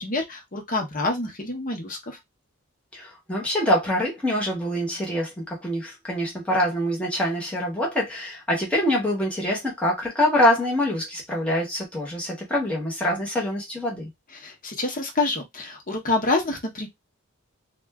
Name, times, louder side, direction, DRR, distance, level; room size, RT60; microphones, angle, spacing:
voice 1, 0.0-2.2 14.3-16.9, left 3 dB, 40° left, 0.8 m, -27 dB
voice 2, 2.9-14.1, left 1 dB, 5° left, 1.0 m, -25 dB
2.5 x 2.2 x 3.4 m
head